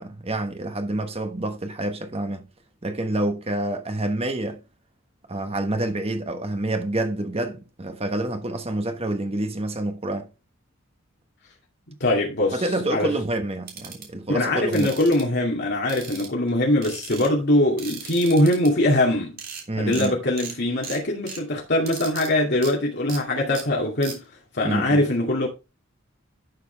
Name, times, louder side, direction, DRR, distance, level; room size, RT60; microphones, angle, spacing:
voice 1, 0.0-2.4 2.8-4.6 5.3-10.3 12.5-14.9 19.7-20.1 24.6-25.0, right 1 dB, 30° right, 1.2 m, -27 dB
voice 2, 12.0-12.6 12.9-13.2 14.3-19.4 19.8-24.2 24.5-25.5, left 1 dB, 55° left, 2.4 m, -22 dB
sound 1, 13.7-14.1 14.7-15.2 15.9-16.5 16.8-17.3 17.8-18.7 19.1-19.2 19.4-19.6 19.9-20.1 20.4-20.5 20.8-21.4 21.9-22.3 22.6-22.7 23.1-23.2 23.5-23.6 24.0-24.2, right 7 dB, 45° right, 3.3 m, -37 dB
11.5 x 6.6 x 3.4 m
head